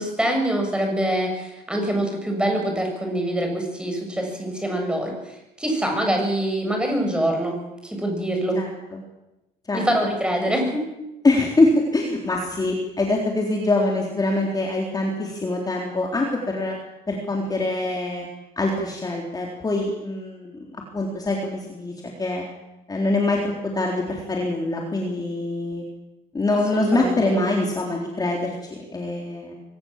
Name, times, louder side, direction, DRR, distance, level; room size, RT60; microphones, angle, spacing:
voice 1, 0.0-7.6 7.8-8.6 9.7-10.9 26.7-27.4, right 1 dB, 5° right, 2 dB, 7.4 m, -25 dB
voice 2, 11.2-16.8 17.1-18.3 18.6-22.4 22.9-23.4 23.8-25.8 26.3-29.5, left 2 dB, 20° left, 0 dB, 3.9 m, -24 dB
24.0 x 18.5 x 7.5 m, 0.96 s
cardioid pair, 110°, 17 cm